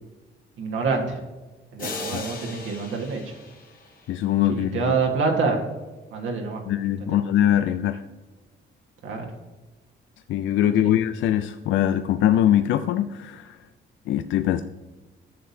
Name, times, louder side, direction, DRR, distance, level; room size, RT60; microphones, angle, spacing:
voice 1, 0.6-1.2 1.7-3.3 4.5-5.6 6.1-6.6 7.0-7.2 9.0-9.3 10.6-10.9, right 4 dB, 75° right, 1 dB, 1.5 m, -26 dB
sound 1, 1.8-4.5, left 3 dB, 45° left, 1.8 m, -38 dB
voice 2, 4.1-4.8 6.7-8.0 10.3-13.6 14.1-14.6, left 11 dB, 75° left, 9 dB, 0.4 m, -22 dB
11.0 x 6.8 x 2.7 m, 1.2 s
cardioid pair, 90°, 20 cm